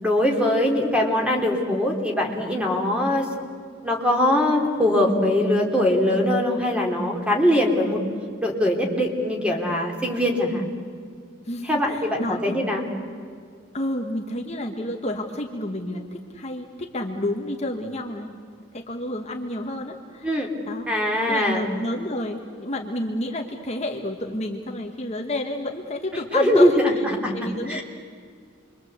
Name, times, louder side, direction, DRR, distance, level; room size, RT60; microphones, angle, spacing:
voice 1, 0.0-3.3 3.8-8.0 8.4-10.6 11.6-12.8 20.2-20.5 20.9-21.6 26.3-27.3 27.7-27.8, left 1 dB, 5° right, 1 dB, 3.4 m, -22 dB
voice 2, 11.4-12.6 13.7-18.4 18.7-27.0 27.3-27.8, left 1 dB, 30° left, 2 dB, 1.6 m, -30 dB
29.0 x 23.5 x 8.1 m, 2.1 s
head